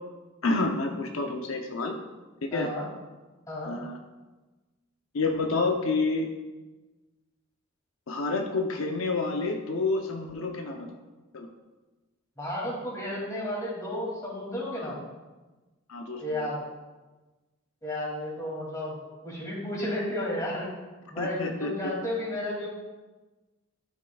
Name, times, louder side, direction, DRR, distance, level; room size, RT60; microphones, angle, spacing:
voice 1, 0.4-1.9 2.4-2.7 3.6-4.0 5.1-6.3 8.1-10.9 11.3-11.5 14.8-14.9 15.9-16.5 21.2-21.9, left 3 dB, 80° left, 3 dB, 0.7 m, -29 dB
voice 2, 2.5-2.9 3.5-3.7 12.4-15.0 16.2-16.6 17.8-19.0 19.2-20.7 21.1-22.7, left 1 dB, 15° left, -4 dB, 2.5 m, -32 dB
12.0 x 6.4 x 2.3 m, 1.2 s
head